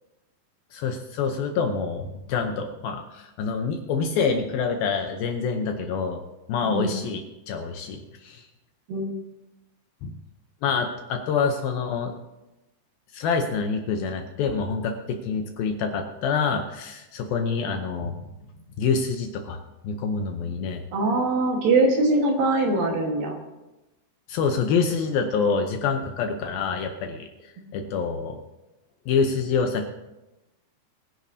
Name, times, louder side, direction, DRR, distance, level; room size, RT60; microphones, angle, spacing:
voice 1, 0.7-6.2 6.5-8.5 10.0-10.1 10.6-12.1 13.1-18.2 18.8-19.6 19.8-20.8 24.3-28.4 29.1-29.9, left 5 dB, 75° left, 4 dB, 2.4 m, -26 dB
voice 2, 20.9-23.4, right 2 dB, 65° right, 1 dB, 3.1 m, -22 dB
22.0 x 10.5 x 2.8 m, 0.99 s
omnidirectional pair, 4.9 m